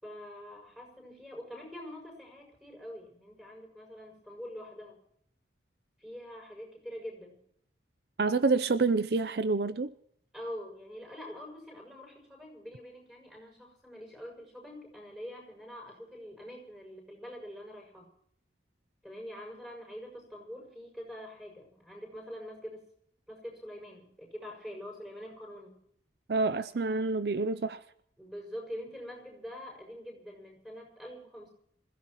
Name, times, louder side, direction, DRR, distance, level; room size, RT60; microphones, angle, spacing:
voice 1, 0.0-5.0 6.0-7.4 10.3-18.1 19.0-22.9 23.3-25.8 28.2-31.5, equal, 5° right, 6.7 m, -45 dB
voice 2, 8.2-9.9 26.3-27.8, right 3 dB, 60° right, 0.5 m, -27 dB
27.0 x 16.0 x 3.0 m
head